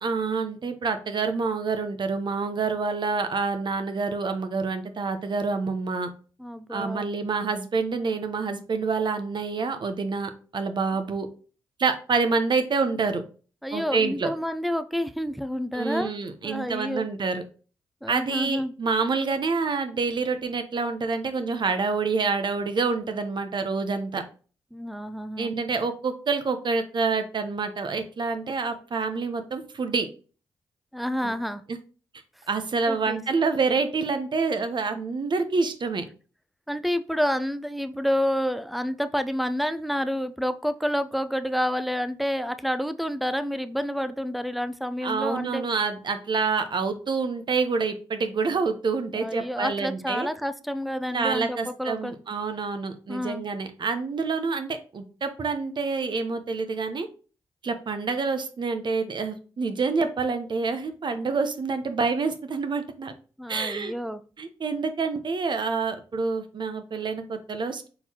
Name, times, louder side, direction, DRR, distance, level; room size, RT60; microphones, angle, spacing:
voice 1, 0.0-6.1 6.7-11.3 11.8-13.2 13.7-14.3 15.7-17.4 18.1-24.2 25.4-30.1 31.2-31.3 31.7-31.8 32.5-36.0 45.0-50.3 51.1-57.1 57.6-63.1 63.5-63.9 64.4-67.9, right 4 dB, 50° right, 8 dB, 0.8 m, -27 dB
voice 2, 6.4-7.1 13.6-16.1 16.4-17.1 18.0-18.7 24.7-25.5 30.9-31.6 32.9-33.2 36.7-45.6 49.2-52.2 53.1-53.4 63.4-64.2, equal, ahead, 12 dB, 0.5 m, -29 dB
4.5 x 3.8 x 2.8 m, 0.37 s
hypercardioid pair, 45°, 10 cm